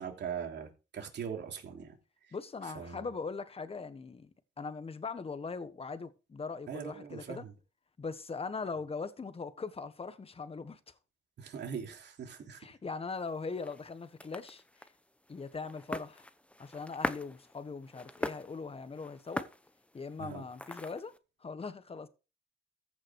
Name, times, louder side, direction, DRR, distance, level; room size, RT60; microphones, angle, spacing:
voice 1, 0.0-2.0 2.3-2.4 2.6-3.1 6.7-7.5 11.4-12.6 20.2-20.5, right 7 dB, 60° right, 3.1 m, -41 dB
voice 2, 2.3-4.3 4.6-7.4 8.0-10.8 12.6-14.6 15.3-16.3 16.6-19.5 19.9-21.1 21.4-22.1, left 4 dB, 30° left, 1.4 m, -40 dB
sound 1, 13.1-21.2, left 1 dB, 5° left, 0.9 m, -43 dB
14.5 x 6.0 x 4.8 m
cardioid pair, 90°, 20 cm